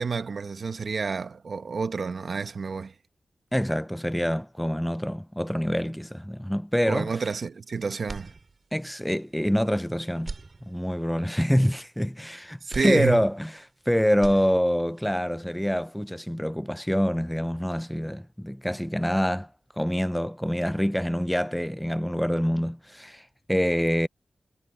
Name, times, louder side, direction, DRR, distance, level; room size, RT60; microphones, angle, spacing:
voice 1, 0.0-2.9 6.9-8.3 12.6-13.2, right 5 dB, 60° right, 1.0 m, -29 dB
voice 2, 3.5-7.1 8.7-10.3 10.7-13.5 13.9-19.5 19.8-24.1, equal, 5° left, 0.4 m, -26 dB
sound 1, 8.0-9.0 9.4-9.5 10.1-11.2 12.7-13.8 14.1-15.0, right 3 dB, 40° right, 4.4 m, -41 dB
wide cardioid pair, 140°, 0 cm